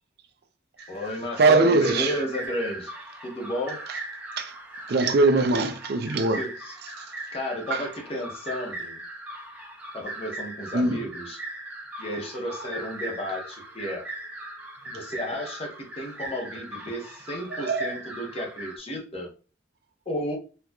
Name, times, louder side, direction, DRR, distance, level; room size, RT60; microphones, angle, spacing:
sound 1, 0.8-18.8, right 1 dB, 10° right, 0.7 m, -39 dB
voice 1, 0.9-2.9 3.2-3.9 6.3-6.8 7.3-9.0 9.9-11.4 12.0-14.0 14.9-19.3 20.1-20.4, left 1 dB, 30° left, 0.9 m, -32 dB
voice 2, 1.4-2.1 4.4-4.5 4.9-6.4 7.7-7.8 10.7-11.0 17.6-17.9, right 3 dB, 60° right, 0.4 m, -21 dB
4.4 x 2.4 x 2.3 m
head